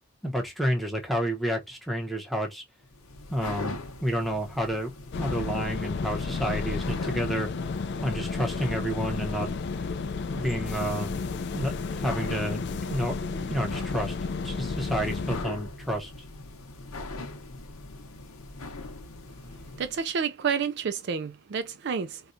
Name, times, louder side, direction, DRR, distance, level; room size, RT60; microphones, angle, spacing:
voice 1, 0.2-2.6 3.3-7.5 8.0-9.5 10.3-11.1 11.5-12.6 12.9-14.2 14.4-16.1, equal, ahead, 0.8 m, -30 dB
sound 1, 2.8-20.0, left 2 dB, 80° left, 0.9 m, -41 dB
sound 2, 5.1-15.4, left 4 dB, 50° left, 0.3 m, -32 dB
voice 2, 19.8-22.2, right 6 dB, 50° right, 0.3 m, -29 dB
4.2 x 2.2 x 2.5 m
head